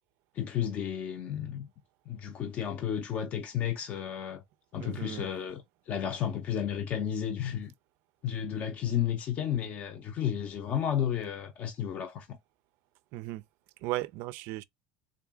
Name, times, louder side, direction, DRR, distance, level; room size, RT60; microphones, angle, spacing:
voice 1, 0.3-1.7 2.1-4.4 4.7-5.6 5.9-7.7 8.2-12.4, left 9 dB, 40° left, 0.6 m, -32 dB
voice 2, 4.8-5.3 13.1-13.4 13.8-14.6, right 17 dB, 60° right, 0.4 m, -36 dB
3.6 x 2.4 x 3.6 m
cardioid pair, 145°, 4 cm